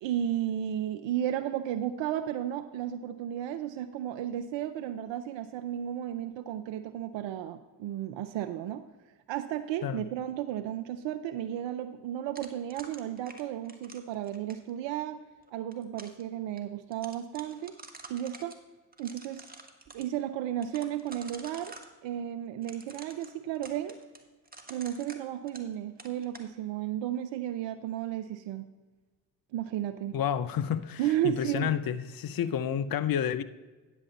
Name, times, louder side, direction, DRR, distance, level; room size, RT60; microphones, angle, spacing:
voice 1, 0.0-8.8 9.3-15.2 15.5-17.8 18.1-18.5 19.0-19.5 19.9-21.7 22.0-24.0 24.7-28.7 29.5-30.2 31.0-31.7 32.7-32.8, right 11 dB, 75° right, 0.6 m, -33 dB
sound 1, 12.4-14.7 15.5-16.2 16.6-16.7 16.9-18.6 18.9-20.1 20.6-21.9 22.6-25.7 26.0-26.5, right 3 dB, 20° right, 1.5 m, -48 dB
voice 2, 30.1-33.4, left 9 dB, 50° left, 0.7 m, -30 dB
9.9 x 7.1 x 4.0 m
hypercardioid pair, 40°, 45 cm